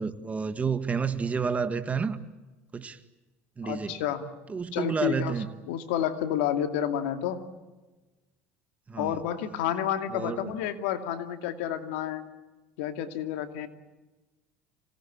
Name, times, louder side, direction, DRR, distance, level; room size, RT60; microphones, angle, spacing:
voice 1, 0.0-2.2 2.7-3.0 3.6-4.0 4.5-5.5 8.9-9.2 10.1-10.5, right 5 dB, 25° right, 9 dB, 1.9 m, -30 dB
voice 2, 3.6-4.3 4.7-5.3 5.7-7.4 9.0-12.2 12.8-13.7, left 10 dB, 85° left, 7 dB, 2.5 m, -30 dB
26.5 x 19.0 x 8.8 m, 1.2 s
supercardioid pair, 105°, 6 cm